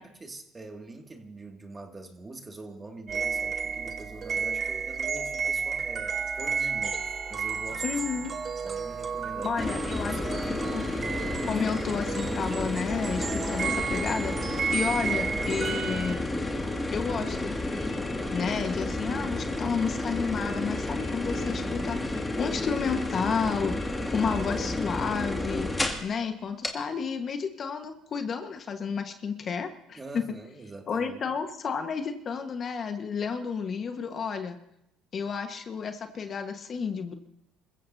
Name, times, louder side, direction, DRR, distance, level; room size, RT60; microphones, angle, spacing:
voice 1, 0.0-8.2 8.6-9.6 9.9-10.5 30.0-31.3, right 2 dB, 25° right, 3 dB, 2.3 m, -44 dB
sound 1, 3.1-16.2, right 6 dB, 40° right, 1.5 m, -32 dB
voice 2, 7.8-8.3 9.4-10.9 11.5-16.3 16.9-17.6 18.3-22.0 22.4-23.8 24.1-25.7 26.0-30.2 30.9-34.6 35.1-37.1, left 6 dB, 45° left, 6 dB, 1.5 m, -31 dB
sound 2, 9.6-26.1 26.6-26.7, left 2 dB, 10° left, 2.2 m, -31 dB
sound 3, 17.1-24.4, left 7 dB, 80° left, 4.2 m, -53 dB
26.5 x 15.0 x 2.8 m, 0.80 s
supercardioid pair, 85°, 0 cm